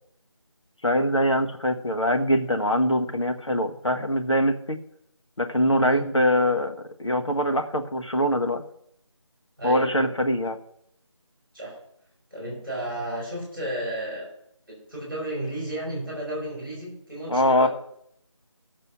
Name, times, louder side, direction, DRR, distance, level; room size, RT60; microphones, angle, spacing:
voice 1, 0.8-4.8 5.4-8.6 9.6-10.6 17.3-17.7, equal, 65° left, 5 dB, 1.3 m, -23 dB
voice 2, 9.6-10.1 11.5-11.8 12.3-14.3 14.7-17.7, right 1 dB, 5° left, -12 dB, 4.4 m, -33 dB
15.0 x 6.7 x 6.2 m, 0.73 s
figure-of-eight pair, 165°, 16 cm